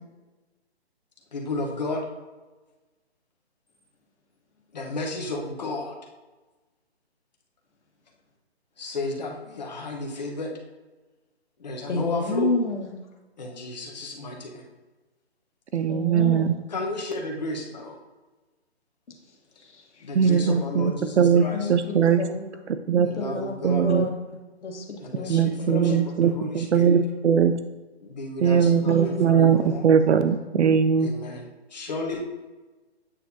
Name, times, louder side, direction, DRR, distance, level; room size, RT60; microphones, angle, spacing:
voice 1, 1.3-2.0 4.7-5.9 8.8-10.5 11.6-12.5 13.4-14.6 16.7-18.0 20.0-21.7 23.0-23.8 25.0-27.0 28.0-29.9 31.0-32.2, left 2 dB, 40° left, 0 dB, 1.1 m, -33 dB
voice 2, 11.9-12.9 15.9-16.5 19.1-19.2 19.6-19.8 20.2-20.3 21.5-22.4 23.1-23.6 23.8-26.1 28.4-28.6 28.9-29.3 29.6-29.8, left 3 dB, 85° left, 1 dB, 1.5 m, -31 dB
voice 3, 15.7-16.5 20.1-22.2 22.9-23.1 23.6-24.1 25.3-27.5 28.4-31.1, right 7 dB, 80° right, 10 dB, 0.6 m, -20 dB
8.6 x 4.5 x 2.8 m, 1.2 s
hypercardioid pair, 170°, 34 cm